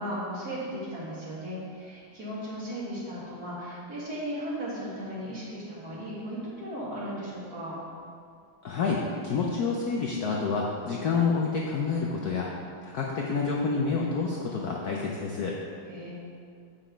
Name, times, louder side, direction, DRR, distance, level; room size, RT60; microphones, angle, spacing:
voice 1, 0.0-7.7 15.9-16.1, equal, 45° right, -7 dB, 2.3 m, -36 dB
voice 2, 8.6-12.5 12.8-15.6, left 4 dB, 65° left, -2 dB, 0.9 m, -28 dB
7.6 x 5.6 x 5.0 m, 2.3 s
omnidirectional pair, 2.3 m